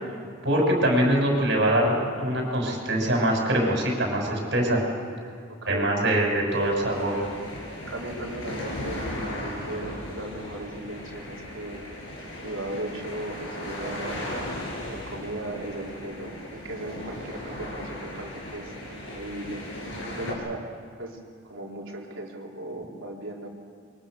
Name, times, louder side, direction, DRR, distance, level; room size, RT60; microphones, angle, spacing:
voice 1, 0.4-4.8 5.7-7.3, right 1 dB, 60° right, 0 dB, 6.8 m, -23 dB
voice 2, 5.5-6.0 7.9-11.9 12.4-14.3 14.9-19.6 20.0-20.7 21.0-21.2 21.4-23.5, right 1 dB, 85° right, -1 dB, 3.9 m, -37 dB
sound 1, 6.5-20.3, left 1 dB, 80° left, 6.8 m, -37 dB
27.0 x 23.5 x 6.7 m, 2.2 s
head